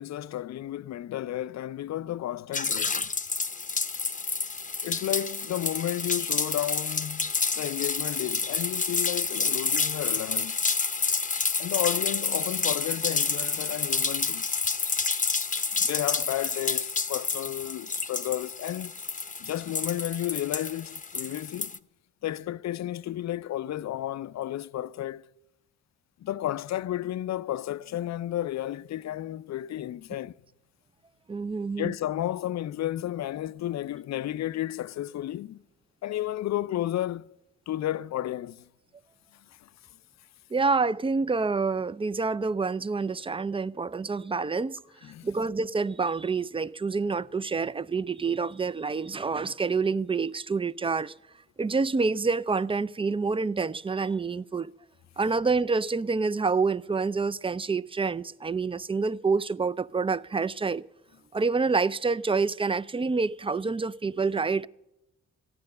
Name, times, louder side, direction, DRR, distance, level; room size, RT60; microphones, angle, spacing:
voice 1, 0.0-3.1 4.8-10.6 11.6-14.5 15.7-18.9 19.4-21.8 22.2-25.3 26.2-30.4 31.8-35.6 36.0-37.4 37.7-38.6 39.6-39.7 45.0-45.3, left 13 dB, 60° left, 0.4 m, -32 dB
sound 1, 2.5-21.8, left 4 dB, 25° left, 0.7 m, -29 dB
voice 2, 31.3-31.9 40.5-44.8 45.2-51.1 51.6-54.7 55.2-60.8 61.3-64.7, right 4 dB, 20° right, 0.4 m, -27 dB
14.0 x 9.6 x 6.5 m
supercardioid pair, 45°, 31 cm